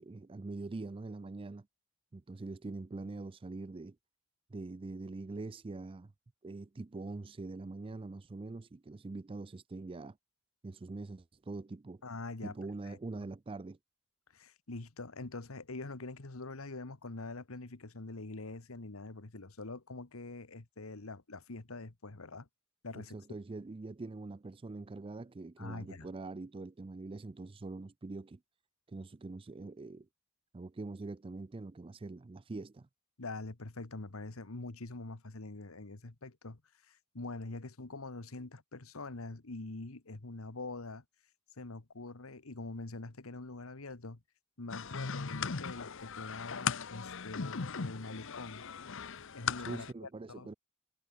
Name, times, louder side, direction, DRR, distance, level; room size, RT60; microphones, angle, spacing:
voice 1, 0.0-1.7 2.1-4.0 4.5-6.1 6.4-10.2 10.6-12.0 12.4-13.8 22.9-28.4 28.9-30.1 30.5-32.9 49.6-50.5, right 3 dB, 25° right, 0.4 m, -43 dB
voice 2, 12.0-12.5 12.9-13.0 14.3-22.5 22.8-23.2 25.6-26.1 33.2-36.6 36.9-41.0 41.6-44.2 44.6-48.7 49.3-50.5, left 2 dB, 85° left, 1.5 m, -44 dB
sound 1, 44.7-49.9, left 6 dB, 65° left, 1.0 m, -38 dB
head